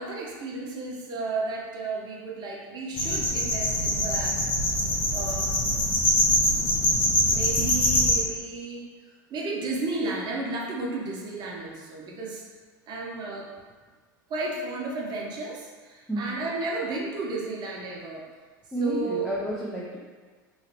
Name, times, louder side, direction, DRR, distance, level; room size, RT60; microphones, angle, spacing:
voice 1, 0.0-5.5 7.3-8.8 9.3-12.4 12.9-13.5 14.3-18.2 18.8-19.3, right 3 dB, 40° right, -3 dB, 0.9 m, -33 dB
sound 1, 2.9-8.1, left 1 dB, 50° left, 0.9 m, -24 dB
voice 2, 18.7-20.0, right 2 dB, ahead, -7 dB, 0.5 m, -30 dB
3.1 x 2.8 x 2.9 m, 1.5 s
hypercardioid pair, 90°, 11 cm